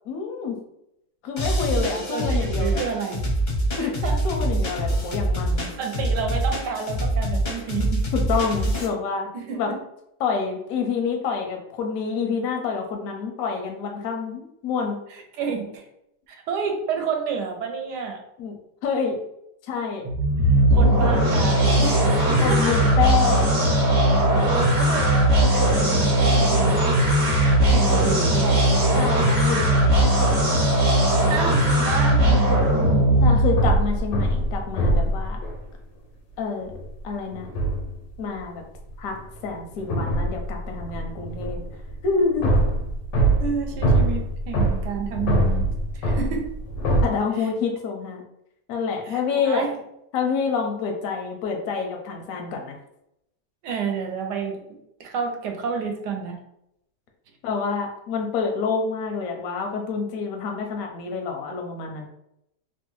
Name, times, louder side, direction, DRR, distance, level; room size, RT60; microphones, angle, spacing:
voice 1, 0.1-0.6 1.2-2.8 3.8-5.7 8.1-9.3 9.6-9.7 10.2-15.0 18.4-18.5 18.8-19.2 19.7-20.0 22.3-23.5 28.9-30.2 33.2-35.4 36.4-36.7 37.0-37.5 38.2-38.6 39.0-39.2 39.4-41.6 42.0-42.5 47.0-48.2 48.7-49.7 50.1-52.8 57.4-62.1, left 5 dB, 70° left, 3 dB, 0.9 m, -27 dB
sound 1, 1.4-8.9, right 1 dB, 50° left, 0.5 m, -25 dB
voice 2, 1.7-3.2 3.8-4.2 5.6-8.0 9.3-9.8 15.1-15.9 16.3-18.2 20.7-22.9 24.1-27.1 27.4-28.6 31.3-33.1 43.4-45.6 45.9-46.5 47.4-47.5 49.0-49.8 53.6-56.4, right 6 dB, 80° right, 3 dB, 1.2 m, -30 dB
sound 2, 20.0-33.8, right 1 dB, 45° right, 1.0 m, -19 dB
sound 3, 33.2-35.6 36.7-36.9 37.3-38.1 38.9-47.0, right 1 dB, 85° left, 1.3 m, -24 dB
3.1 x 2.2 x 3.0 m, 0.79 s
omnidirectional pair, 1.9 m